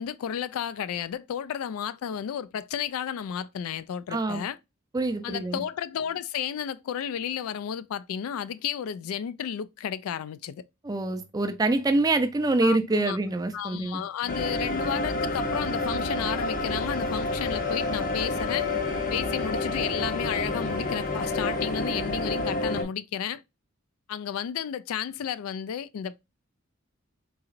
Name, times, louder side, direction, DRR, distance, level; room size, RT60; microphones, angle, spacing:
voice 1, 0.0-4.6 5.2-10.6 12.6-13.2 13.5-18.7 19.1-23.4 24.1-26.2, left 8 dB, 90° left, 0.3 m, -32 dB
voice 2, 4.1-4.4 4.9-5.6 10.8-14.0, right 2 dB, 15° right, 0.3 m, -25 dB
sound 1, 14.3-22.8, left 2 dB, 40° left, 0.6 m, -29 dB
4.0 x 2.8 x 2.4 m
head